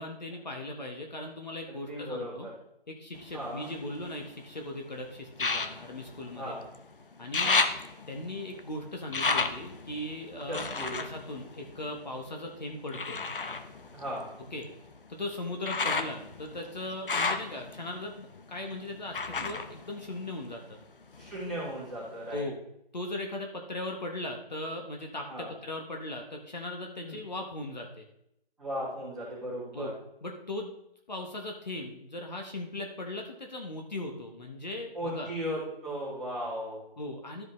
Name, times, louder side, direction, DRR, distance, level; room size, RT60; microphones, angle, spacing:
voice 1, 0.0-2.5 2.9-6.5 7.2-7.6 8.1-13.2 14.5-14.7 15.1-20.8 22.3-22.6 22.9-28.0 29.7-29.9 30.2-30.7 31.1-35.3 37.0-37.4, left 1 dB, 45° left, 2 dB, 1.2 m, -38 dB
voice 2, 1.7-2.5 3.3-3.7 6.3-6.6 7.4-7.6 10.5-11.0 13.9-14.3 19.3-19.5 21.2-22.4 25.3-25.5 27.0-27.2 28.6-29.9 34.9-36.8, equal, ahead, -19 dB, 1.4 m, -37 dB
sound 1, 3.2-4.5 5.3-6.8 7.1-12.3 12.9-20.8 21.1-21.9 22.4-22.5, left 4 dB, 60° left, 0.8 m, -33 dB
13.0 x 5.1 x 3.1 m, 0.78 s
figure-of-eight pair, 175°, 30 cm